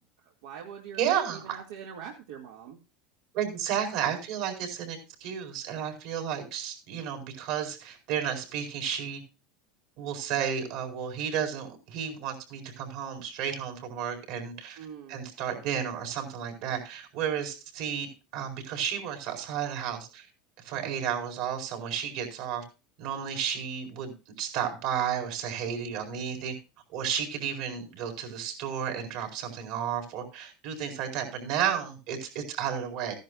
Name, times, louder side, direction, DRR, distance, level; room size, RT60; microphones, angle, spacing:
voice 1, 0.2-2.8 14.8-15.2 20.7-21.0, right 7 dB, 85° right, 0 dB, 2.2 m, -44 dB
voice 2, 1.0-1.6 3.3-9.2 10.0-14.8 15.1-18.1 18.3-20.2 20.6-22.6 23.0-24.1 24.4-26.5 26.9-33.1, right 8 dB, 65° right, 4 dB, 4.6 m, -32 dB
15.5 x 10.5 x 2.5 m, 0.30 s
supercardioid pair, 135°, 0 cm